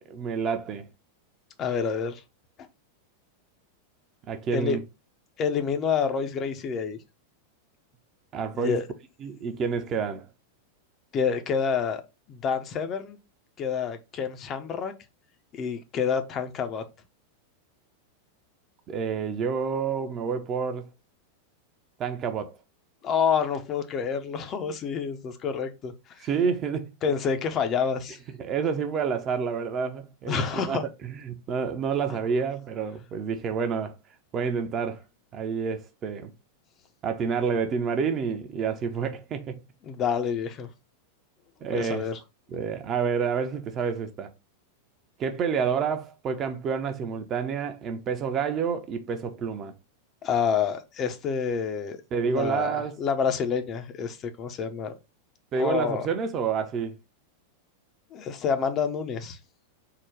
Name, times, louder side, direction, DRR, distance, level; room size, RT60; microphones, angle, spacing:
voice 1, 0.1-0.9 4.3-4.8 8.3-8.8 9.2-10.2 18.9-20.9 22.0-22.6 26.2-26.9 28.4-33.9 34.3-35.0 35.3-36.3 37.0-39.6 41.6-42.1 42.5-44.3 45.2-49.7 52.1-52.9 55.5-56.9, right 6 dB, 30° right, 0.6 m, -28 dB
voice 2, 1.6-2.2 4.5-4.8 5.4-7.0 8.6-8.8 11.1-12.0 12.3-13.2 13.6-14.9 15.5-16.8 23.0-25.9 27.0-28.2 30.3-30.8 39.9-40.7 41.7-42.2 50.2-52.0 52.3-54.9 55.6-56.1 58.1-59.4, left 6 dB, 30° left, 0.6 m, -28 dB
3.8 x 2.2 x 4.4 m
figure-of-eight pair, 90°, 0 cm